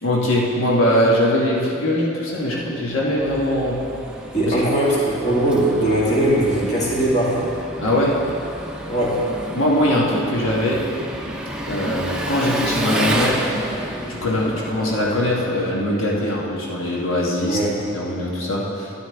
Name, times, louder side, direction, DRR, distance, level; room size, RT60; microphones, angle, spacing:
voice 1, 0.0-3.8 4.5-4.6 7.8-8.1 9.5-10.8 11.7-13.4 14.1-17.6 17.9-18.9, left 1 dB, 85° left, -4 dB, 1.4 m, -21 dB
Engine, 2.7-16.3, right 1 dB, 5° right, 0.6 m, -30 dB
voice 2, 4.3-7.4 8.9-9.3 17.4-17.8, right 1 dB, 35° left, -6 dB, 2.0 m, -20 dB
12.5 x 9.5 x 3.4 m, 2.7 s
head